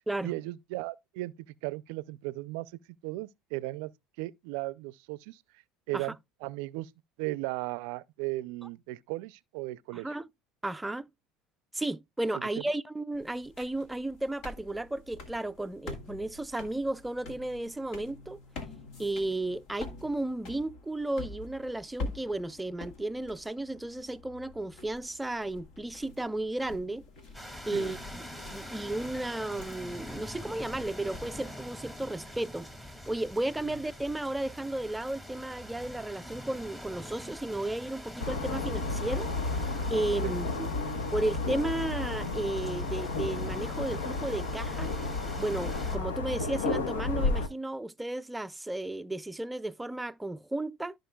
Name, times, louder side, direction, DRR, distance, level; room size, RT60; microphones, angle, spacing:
voice 1, 0.0-2.7 3.0-3.9 4.2-5.4 5.9-6.2 6.4-6.9 7.2-10.2 12.6-12.7 27.7-27.9 38.5-38.6 40.2-40.3, right 19 dB, 75° right, 0.4 m, -36 dB
voice 2, 9.9-10.3 10.6-11.1 11.7-18.4 19.0-27.0 27.7-28.0 28.5-39.3 39.9-40.7 41.1-44.9 45.4-50.9, right 2 dB, 10° right, 0.4 m, -34 dB
sound 1, 13.1-31.6, left 3 dB, 65° left, 1.8 m, -46 dB
sound 2, 27.3-46.0, equal, 10° left, 2.0 m, -45 dB
sound 3, 38.2-47.5, left 3 dB, 85° left, 1.1 m, -32 dB
13.5 x 5.1 x 2.3 m
hypercardioid pair, 85°, 0 cm